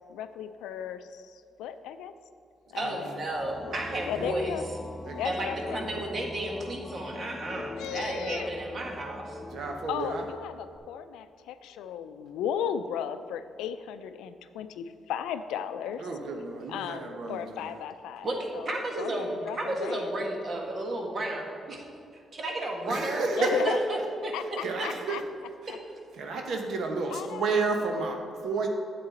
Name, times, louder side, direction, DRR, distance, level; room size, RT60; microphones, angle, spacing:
voice 1, 0.1-2.1 2.7-3.0 4.1-4.7 5.1-6.0 7.5-8.5 9.9-16.0 16.7-18.3 18.5-20.1 23.4-23.8 24.3-25.2 27.1-27.5, left 9 dB, 90° left, 11 dB, 0.4 m, -36 dB
voice 2, 2.8-4.6 5.2-9.4 18.2-18.4 18.7-21.8 22.1-24.3 24.8-24.9, right 1 dB, 50° right, 1 dB, 1.8 m, -33 dB
sound 1, 3.2-10.8, left 2 dB, 30° left, 0.7 m, -42 dB
voice 3, 3.6-4.3 5.0-5.8 7.8-8.2 9.5-10.2 16.0-17.6 22.9-23.8 24.6-25.2 25.6-25.7 26.2-28.2 28.4-28.7, right 3 dB, 70° right, 3 dB, 1.1 m, -32 dB
8.8 x 7.6 x 4.2 m, 2.4 s
supercardioid pair, 65°, 0 cm